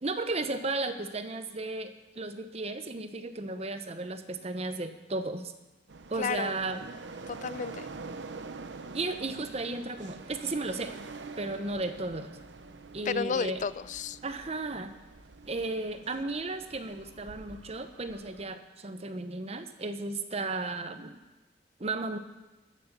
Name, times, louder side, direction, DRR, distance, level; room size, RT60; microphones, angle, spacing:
voice 1, 0.0-5.5 6.1-7.0 8.9-11.0 11.4-12.3 12.9-13.6 14.2-14.9 15.5-21.2 21.8-22.2, right 2 dB, 35° right, 9 dB, 0.8 m, -34 dB
sound 1, 5.9-18.4, right 3 dB, 85° right, 0.8 m, -46 dB
voice 2, 6.2-6.5 7.3-7.9 13.1-14.2, left 5 dB, 45° left, 17 dB, 0.4 m, -32 dB
13.0 x 7.6 x 6.8 m, 1.1 s
head